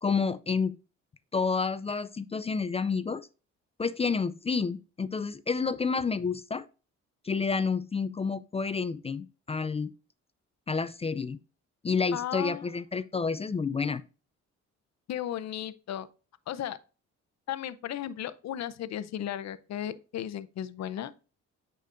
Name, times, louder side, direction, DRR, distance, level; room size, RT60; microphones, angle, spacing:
voice 1, 0.0-0.8 1.3-3.3 3.8-6.6 7.2-9.9 10.7-11.4 11.8-14.0, left 5 dB, 20° left, 0.3 m, -29 dB
voice 2, 12.1-12.6 15.1-16.1 16.5-16.8 17.5-21.1, left 11 dB, 60° left, 0.7 m, -35 dB
8.9 x 5.2 x 2.5 m
cardioid pair, 90°, 30 cm